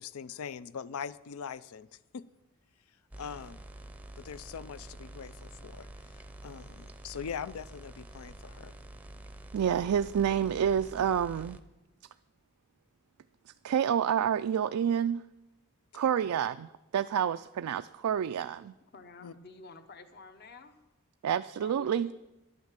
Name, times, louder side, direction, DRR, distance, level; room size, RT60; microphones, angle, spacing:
voice 1, 0.0-2.3 3.2-3.6 4.2-8.7 15.9-16.0 19.2-19.3, left 7 dB, 80° left, 18 dB, 0.4 m, -42 dB
sound 1, 3.1-11.6, right 1 dB, 5° right, 0.6 m, -48 dB
voice 2, 9.5-11.6 13.6-15.2 15.9-18.7 21.2-22.1, right 8 dB, 90° right, 10 dB, 0.3 m, -28 dB
voice 3, 18.9-20.8 21.6-22.1, left 3 dB, 50° left, 10 dB, 0.9 m, -50 dB
11.0 x 9.4 x 7.4 m, 1.0 s
head